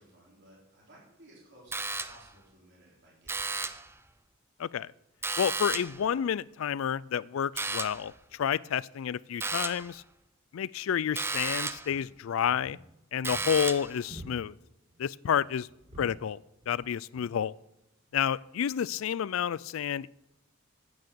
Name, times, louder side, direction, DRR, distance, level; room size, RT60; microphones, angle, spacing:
voice 1, 0.0-3.6, right 1 dB, 55° right, -4 dB, 4.1 m, -58 dB
sound 1, 1.7-2.4 3.3-3.9 5.2-6.1 7.6-8.1 9.4-9.9 11.2-12.0 13.2-14.0, right 3 dB, 10° right, 0.5 m, -33 dB
voice 2, 4.6-4.9 5.4-10.0 10.5-12.8 13.1-14.5 15.0-15.7 16.0-17.5 18.1-20.1, left 8 dB, 70° left, 22 dB, 0.4 m, -30 dB
sound 2, 11.8-12.0 12.5-13.0 13.3-13.5 14.1-14.6 14.9-15.1 15.5-16.2 16.6-16.9 17.1-17.3 18.1-18.3, right 1 dB, 40° right, 5.6 m, -48 dB
9.6 x 8.8 x 6.9 m, 0.89 s
head